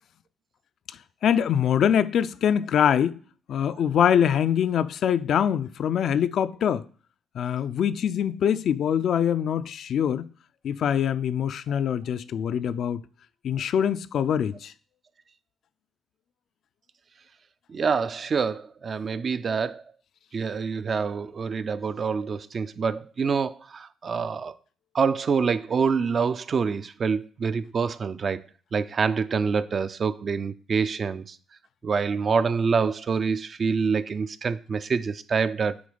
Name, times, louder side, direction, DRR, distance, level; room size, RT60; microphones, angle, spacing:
voice 1, 1.2-3.2 3.5-6.8 7.3-10.3 10.6-13.0 13.4-14.7, left 9 dB, 65° left, 0.4 m, -24 dB
voice 2, 17.7-19.8 20.3-24.5 24.9-28.4 28.7-31.4 31.8-35.9, right 5 dB, 45° right, 0.5 m, -26 dB
7.9 x 3.1 x 5.0 m
cardioid pair, 90°, 0 cm